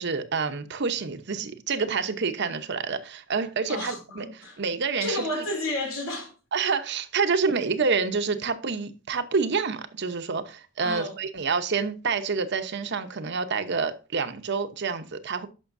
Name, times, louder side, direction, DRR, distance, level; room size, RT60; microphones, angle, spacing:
voice 1, 0.0-4.3 4.6-5.4 6.5-15.5, right 5 dB, 60° right, 0.8 m, -28 dB
voice 2, 3.7-4.6 5.0-6.3 10.8-11.2, left 2 dB, 85° left, 2.8 m, -32 dB
11.0 x 6.2 x 2.6 m
head